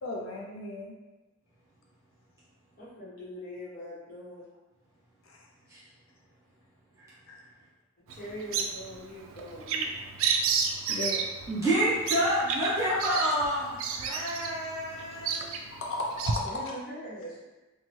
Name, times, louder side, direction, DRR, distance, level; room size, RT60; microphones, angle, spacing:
voice 1, 0.0-0.9 5.3-5.4 7.3-7.4 10.9-11.2 15.8-16.7, left 2 dB, 85° left, -2 dB, 0.5 m, -35 dB
voice 2, 2.8-4.5 8.1-9.9 16.4-17.4, equal, 45° left, -9 dB, 1.2 m, -42 dB
Bird vocalization bird call bird song, 8.1-16.4, right 5 dB, 85° right, 0.3 m, -32 dB
voice 3, 11.5-15.6, equal, 15° right, -10 dB, 1.3 m, -28 dB
2.9 x 2.3 x 3.0 m, 1.1 s
head